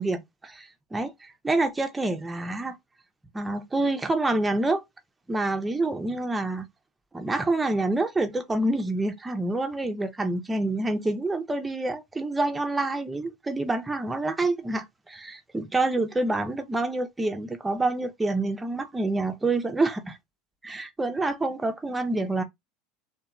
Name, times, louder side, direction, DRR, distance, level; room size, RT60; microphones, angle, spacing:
voice 1, 0.0-2.8 3.3-4.8 5.3-6.7 7.1-20.2 20.6-22.4, right 2 dB, 15° right, 0.4 m, -27 dB
2.8 x 2.1 x 2.3 m
supercardioid pair, 100°, 0 cm